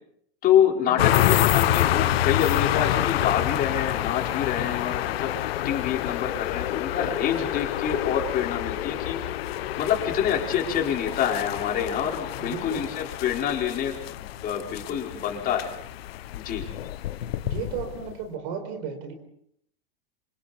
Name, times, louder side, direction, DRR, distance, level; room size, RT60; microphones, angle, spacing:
voice 1, 0.4-9.2 9.8-15.7 16.3-16.6, left 9 dB, 30° left, 0 dB, 4.8 m, -26 dB
sound 1, 1.0-18.2, left 13 dB, 80° left, 1.2 m, -27 dB
voice 2, 12.4-12.9 17.4-19.1, right 6 dB, 60° right, 6 dB, 4.7 m, -34 dB
28.5 x 26.0 x 4.4 m, 0.69 s
supercardioid pair, 150°, 30 cm